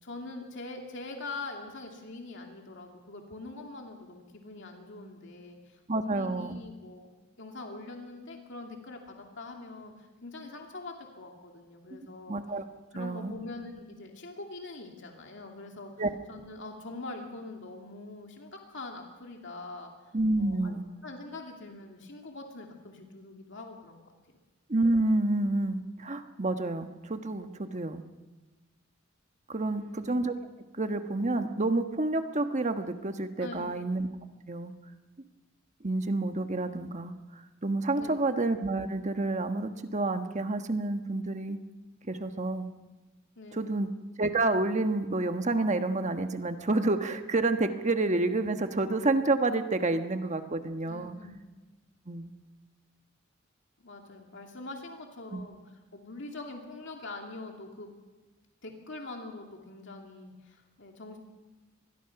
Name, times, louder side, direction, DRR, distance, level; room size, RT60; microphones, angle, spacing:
voice 1, 0.0-7.1 7.4-12.4 12.9-15.9 16.3-19.9 20.4-20.7 21.0-24.1 29.7-30.1 33.4-33.9 38.0-38.3 43.4-43.8 50.9-51.4 53.8-57.9 58.6-61.2, left 2 dB, 65° left, 2 dB, 2.5 m, -43 dB
voice 2, 5.9-6.6 11.9-12.6 12.9-13.3 16.0-16.1 20.1-20.8 24.7-28.0 29.5-30.3 30.7-34.1 34.5-34.7 35.8-41.6 42.1-42.7 43.5-43.9 44.2-51.1 52.1-52.3 55.3-55.4, right 2 dB, 35° right, 7 dB, 1.3 m, -29 dB
25.0 x 20.5 x 5.9 m, 1.2 s
head